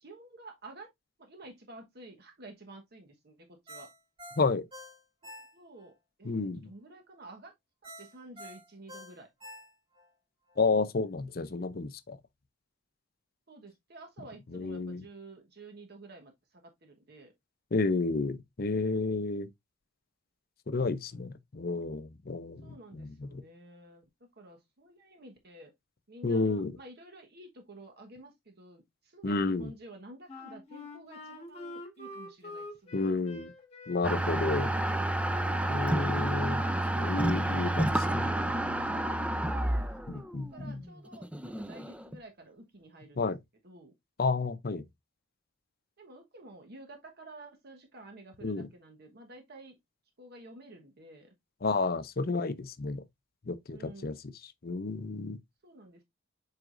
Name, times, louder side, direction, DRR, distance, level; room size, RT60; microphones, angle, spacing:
voice 1, 0.0-0.9 1.2-3.9 5.5-5.9 6.2-7.5 7.8-9.3 13.5-16.3 16.6-17.3 20.8-21.3 22.6-24.0 24.4-25.7 26.1-33.1 40.1-43.2 43.6-43.9 46.0-49.8 50.2-51.3 53.7-54.2 55.6-56.0, right 2 dB, 55° right, 1.2 m, -51 dB
Ringtone, 3.7-5.9 6.3-6.4 7.8-10.1 10.5-10.6, equal, 30° right, 4.8 m, -48 dB
voice 2, 6.2-6.7 10.6-12.2 14.5-15.0 17.7-19.5 20.7-23.4 26.2-26.8 29.2-29.7 32.9-33.5 33.9-34.7 35.7-36.6 36.9-38.3 40.1-40.8 43.2-43.4 44.2-44.8 48.4-48.7 51.6-53.0 53.5-55.4, left 3 dB, 50° left, 0.6 m, -31 dB
Wind instrument woodwind instrument, 30.3-37.1, left 2 dB, 30° left, 1.6 m, -46 dB
sound 1, 34.0-42.2, right 1 dB, 5° right, 0.5 m, -30 dB
7.9 x 4.8 x 2.5 m
head